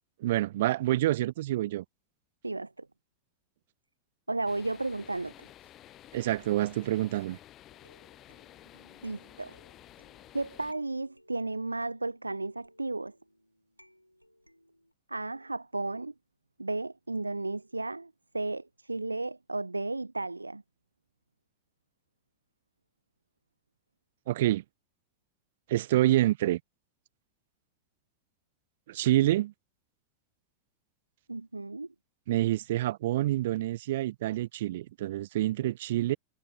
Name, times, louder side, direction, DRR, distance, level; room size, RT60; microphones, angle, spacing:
voice 1, 0.2-1.8 6.1-7.4 24.3-24.6 25.7-26.6 28.9-29.5 32.3-36.2, right 15 dB, 55° right, 0.7 m, -27 dB
voice 2, 2.4-2.9 4.3-5.5 9.0-9.5 10.3-13.1 15.1-16.1 16.6-20.6 31.3-31.9, right 2 dB, 80° right, 1.5 m, -34 dB
sound 1, 4.5-10.7, left 13 dB, 30° left, 2.0 m, -53 dB
sound 2, 7.7-14.9, equal, 90° left, 7.2 m, -62 dB
figure-of-eight pair, 90°, 0 cm